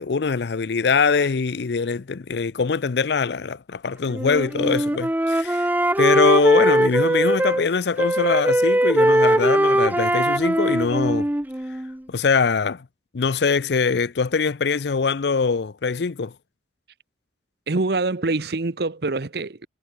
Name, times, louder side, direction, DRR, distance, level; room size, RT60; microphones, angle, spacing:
voice 1, 0.0-5.7 6.0-11.3 12.1-12.9 13.1-16.3, left 5 dB, 65° left, 0.5 m, -22 dB
Wind instrument woodwind instrument, 4.1-7.6 8.0-12.0, right 1 dB, 10° right, 0.7 m, -20 dB
voice 2, 17.7-19.7, right 3 dB, 60° right, 0.9 m, -25 dB
head